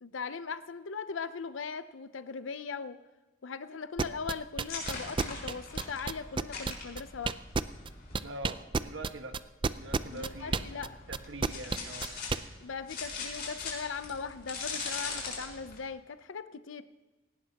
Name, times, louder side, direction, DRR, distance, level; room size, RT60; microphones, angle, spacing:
voice 1, 0.0-3.0 3.4-7.4 10.1-11.0 12.6-16.8, left 5 dB, 75° left, 12 dB, 0.6 m, -39 dB
sound 1, 4.0-7.9 8.1-12.4, right 4 dB, 25° right, 0.4 m, -30 dB
sound 2, 4.7-8.2 9.8-15.8, left 4 dB, 55° left, 4.3 m, -41 dB
voice 2, 8.2-9.3 9.7-12.1, right 2 dB, 70° right, 5 dB, 1.5 m, -44 dB
18.0 x 17.0 x 2.9 m, 1.2 s
head